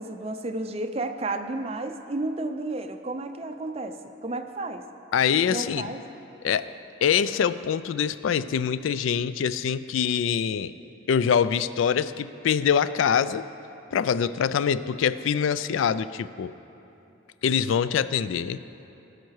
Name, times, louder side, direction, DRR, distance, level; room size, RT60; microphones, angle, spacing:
voice 1, 0.0-4.9 5.5-6.1, right 2 dB, 30° right, 7 dB, 0.5 m, -32 dB
voice 2, 5.1-5.9 6.4-6.7 7.0-10.7 11.1-13.5 13.9-16.5 17.4-18.6, left 7 dB, 85° left, 15 dB, 0.3 m, -24 dB
19.0 x 6.6 x 4.7 m, 2.9 s
head